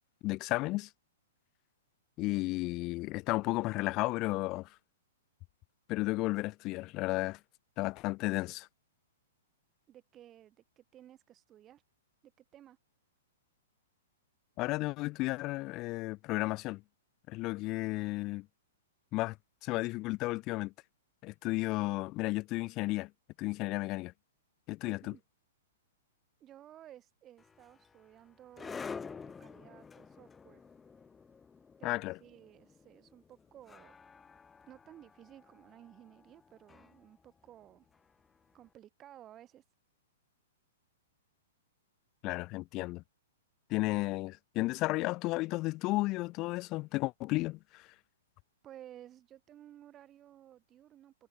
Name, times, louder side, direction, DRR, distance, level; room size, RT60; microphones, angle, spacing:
voice 1, 0.2-0.9 2.2-4.7 5.9-7.4 7.8-8.7 14.6-16.8 17.3-18.5 19.1-19.4 19.6-20.7 21.2-23.1 23.4-24.1 24.7-25.1 31.8-32.2 42.2-43.0 43.7-47.9, left 21 dB, 30° left, 0.4 m, -33 dB
voice 2, 9.9-11.8 12.2-12.8 24.8-25.2 26.4-30.6 31.8-34.0 34.7-37.9 38.5-39.6 48.6-51.3, right 11 dB, 25° right, 2.1 m, -55 dB
sound 1, 27.4-38.5, left 5 dB, 10° left, 1.7 m, -49 dB
figure-of-eight pair, 105°, 0 cm